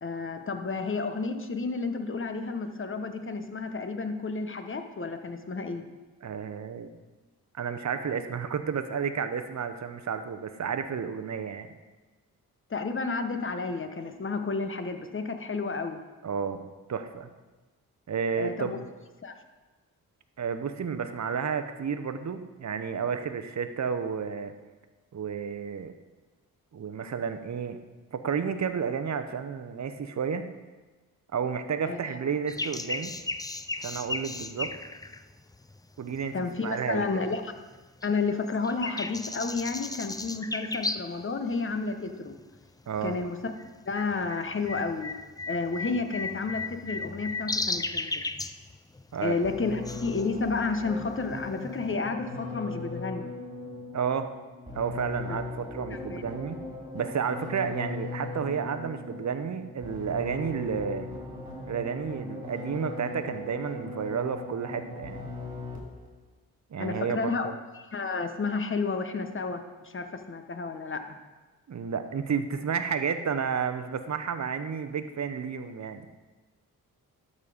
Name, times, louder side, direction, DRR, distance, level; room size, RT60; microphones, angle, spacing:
voice 1, 0.0-5.8 12.7-16.0 18.4-18.8 19.2-19.4 31.8-32.0 36.3-37.5 38.0-42.4 43.0-43.4 43.9-45.2 45.5-48.3 49.2-53.3 56.1-56.2 66.8-71.2, left 4 dB, 30° left, 7 dB, 1.0 m, -31 dB
voice 2, 6.2-6.9 7.5-11.7 16.2-16.6 16.9-17.3 18.1-18.9 20.4-24.5 25.1-25.9 26.7-27.8 28.1-30.5 31.3-33.2 33.8-34.7 36.0-36.3 36.6-37.1 42.9-43.2 49.1-49.4 53.9-54.3 54.7-56.6 56.9-61.1 61.7-65.3 66.7-67.5 71.7-76.1, right 6 dB, 45° right, 9 dB, 0.9 m, -31 dB
sound 1, 32.5-36.4 36.9-37.8 38.0-41.2 41.5-41.6 42.3-42.7 42.9-51.9, left 3 dB, 10° left, 0.4 m, -35 dB
sound 2, 49.4-66.1, left 3 dB, 10° right, 3.2 m, -39 dB
12.0 x 4.2 x 5.0 m, 1.2 s
supercardioid pair, 50°, 38 cm